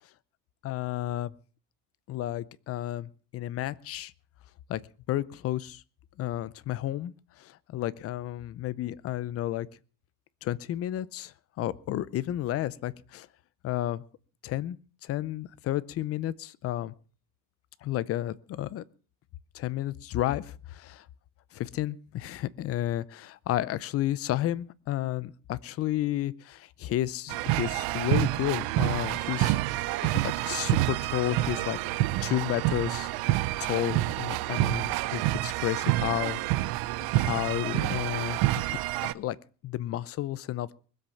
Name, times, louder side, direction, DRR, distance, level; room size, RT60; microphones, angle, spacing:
voice 1, 0.6-1.3 2.1-4.1 4.7-4.8 5.1-5.8 6.2-9.7 10.4-13.3 13.6-14.0 14.4-16.9 17.8-18.8 19.5-21.1 21.5-29.6 30.0-31.8 32.2-36.4 37.1-39.4 39.6-40.7, left 13 dB, 40° left, 19 dB, 0.6 m, -32 dB
sound 1, 27.3-39.1, right 17 dB, 70° right, 0.7 m, -28 dB
20.5 x 8.0 x 7.0 m, 0.40 s
cardioid pair, 165°, 38 cm